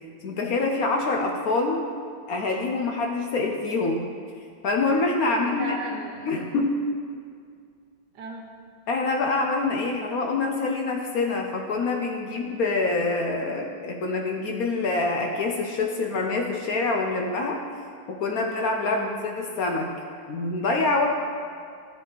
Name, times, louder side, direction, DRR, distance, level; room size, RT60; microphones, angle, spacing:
voice 1, 0.2-1.9 2.3-4.0 4.6-5.7 6.3-6.9 8.9-17.6 18.1-19.0 19.4-19.9 20.3-21.1, left 3 dB, 65° left, 2 dB, 1.0 m, -25 dB
voice 2, 5.3-6.4 8.1-8.5 18.8-19.1, right 2 dB, 70° right, 1 dB, 1.5 m, -37 dB
13.0 x 4.8 x 3.9 m, 2.2 s
omnidirectional pair, 2.0 m